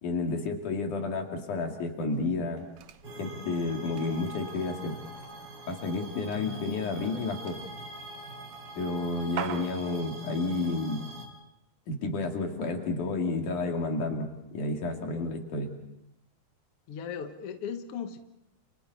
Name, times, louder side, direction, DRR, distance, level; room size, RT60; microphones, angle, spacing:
voice 1, 0.0-2.6 3.2-4.9 5.7-7.6 8.8-11.1 11.9-14.3 14.5-15.7, left 3 dB, 55° left, 2 dB, 3.7 m, -31 dB
sound 1, 2.1-10.1, right 10 dB, 90° right, 1.5 m, -46 dB
sound 2, 3.0-11.3, right 2 dB, 25° right, 4.0 m, -44 dB
voice 2, 16.9-18.2, left 7 dB, 75° left, 6 dB, 1.3 m, -37 dB
30.0 x 29.0 x 4.2 m, 0.85 s
omnidirectional pair, 4.6 m